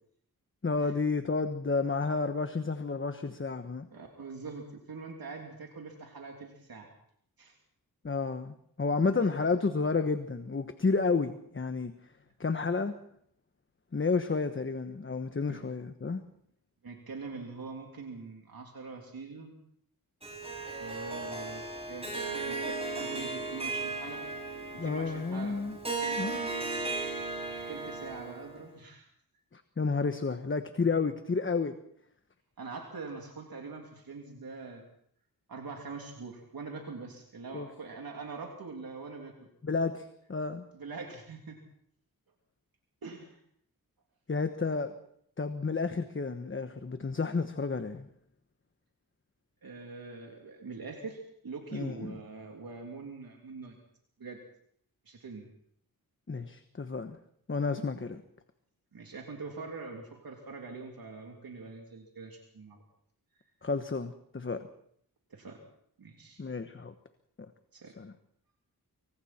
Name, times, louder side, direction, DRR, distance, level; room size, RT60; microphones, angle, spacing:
voice 1, 0.6-3.9 8.0-11.9 12.4-12.9 13.9-16.2 24.8-25.8 26.2-26.5 29.5-31.7 37.5-37.7 39.6-40.7 44.3-44.9 45.4-48.1 51.7-52.2 56.3-57.2 57.5-58.2 63.6-64.7 66.4-66.9 68.0-68.1, left 4 dB, 35° left, 8 dB, 1.3 m, -31 dB
voice 2, 3.9-6.9 7.4-7.6 15.5-15.6 16.8-19.6 20.6-22.1 22.4-24.3 24.8-25.6 27.7-29.0 32.6-34.8 35.5-39.4 40.7-41.6 43.0-43.4 49.6-53.8 54.2-54.4 55.0-55.5 58.9-62.8 65.3-65.6 66.0-66.4 67.7-67.9, right 4 dB, 70° right, 1 dB, 3.2 m, -43 dB
Harp, 20.2-28.6, right 3 dB, 15° right, 6.5 m, -36 dB
26.0 x 25.0 x 4.4 m, 0.67 s
wide cardioid pair, 100°, 37 cm